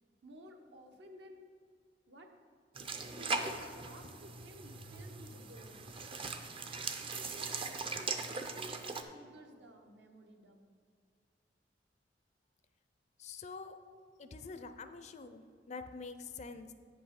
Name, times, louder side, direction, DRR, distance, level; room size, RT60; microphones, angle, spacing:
voice 1, 0.2-1.4 2.1-2.3 3.0-5.9 7.0-8.8 9.1-10.7, equal, 65° right, 3 dB, 1.0 m, -54 dB
sound 1, 2.8-9.0, right 4 dB, 30° right, 0.6 m, -40 dB
voice 2, 13.2-13.8 14.2-16.7, left 4 dB, 40° left, 9 dB, 0.5 m, -46 dB
8.9 x 5.4 x 5.8 m, 2.2 s
head